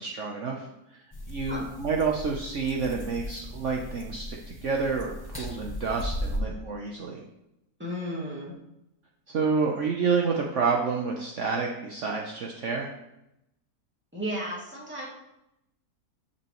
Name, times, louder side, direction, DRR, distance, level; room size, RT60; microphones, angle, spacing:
voice 1, 0.0-7.2 9.3-12.9, right 5 dB, 55° right, 0 dB, 1.1 m, -29 dB
sound 1, 1.1-6.4, left 1 dB, 20° left, 0.8 m, -37 dB
voice 2, 7.8-8.5 14.1-15.0, equal, 5° right, -5 dB, 2.3 m, -34 dB
13.5 x 5.9 x 3.1 m, 0.87 s
omnidirectional pair, 1.6 m